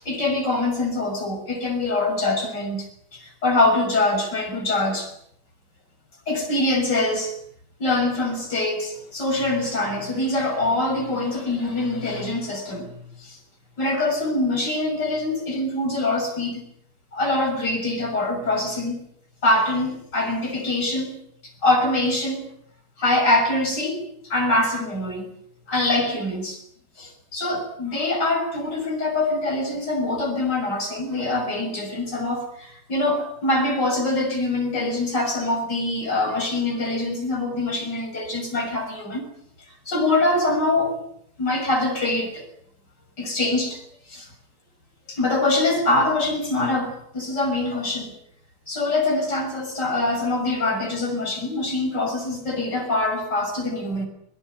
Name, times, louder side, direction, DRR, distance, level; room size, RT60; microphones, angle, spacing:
voice 1, 0.0-5.1 6.3-7.3 7.8-12.9 13.2-13.4 13.8-16.6 17.1-19.0 19.4-22.5 23.0-25.3 25.7-26.6 27.0-39.3 39.9-41.0 41.4-42.5 43.2-43.8 44.1-44.3 45.1-48.1 48.7-54.1, left 2 dB, 90° left, 4 dB, 7.0 m, -24 dB
23.5 x 21.0 x 9.6 m, 0.70 s
omnidirectional pair, 1.8 m